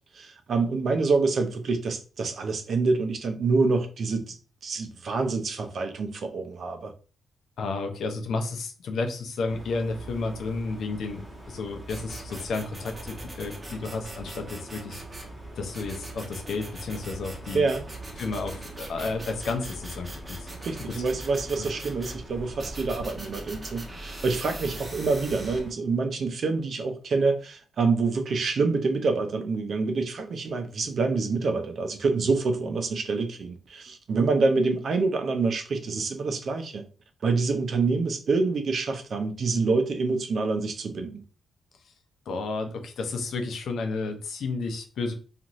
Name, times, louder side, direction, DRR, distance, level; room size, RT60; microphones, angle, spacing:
voice 1, 0.1-4.4 4.6-6.9 17.5-17.8 20.6-36.9 37.2-41.2, right 4 dB, 60° right, 0.5 m, -26 dB
voice 2, 7.6-11.2 11.5-15.0 15.5-17.7 18.2-21.0 42.3-45.1, left 3 dB, 80° left, 0.6 m, -32 dB
sound 1, 9.5-25.7, right 1 dB, 10° right, 1.2 m, -44 dB
sound 2, 11.9-15.3 15.7-22.2 22.6-25.6, right 2 dB, 30° right, 0.8 m, -41 dB
2.5 x 2.5 x 3.0 m
cardioid pair, 100°, 0 cm